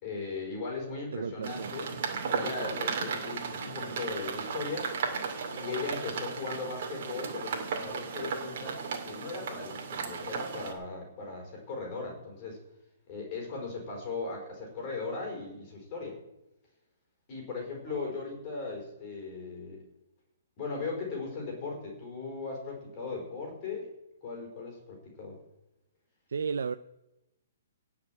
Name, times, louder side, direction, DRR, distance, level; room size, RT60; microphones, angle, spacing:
voice 1, 0.0-1.9 2.3-4.9 5.5-12.6 13.1-16.2 17.3-19.8 20.6-23.9 24.2-25.4, left 4 dB, 20° left, 0 dB, 5.1 m, -38 dB
voice 2, 0.8-1.7 17.9-18.1 26.3-26.7, right 5 dB, 75° right, 10 dB, 0.6 m, -35 dB
sound 1, 1.4-10.7, right 5 dB, 35° right, 2.6 m, -35 dB
17.5 x 6.0 x 8.9 m, 0.92 s
hypercardioid pair, 175°, 0 cm